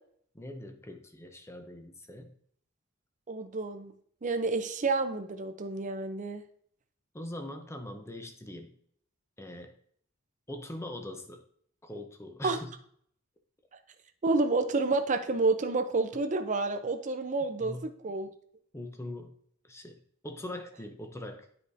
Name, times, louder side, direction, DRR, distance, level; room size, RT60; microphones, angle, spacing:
voice 1, 0.3-2.4 7.1-8.8 9.4-9.7 10.5-11.4 11.8-12.7 17.6-17.9 18.7-19.3 19.6-20.0 20.2-21.6, left 1 dB, 15° left, 5 dB, 0.7 m, -42 dB
voice 2, 3.3-3.9 4.2-6.4 12.4-12.6 14.2-18.3, right 3 dB, 35° right, 7 dB, 0.6 m, -29 dB
9.7 x 4.9 x 2.7 m, 0.62 s
head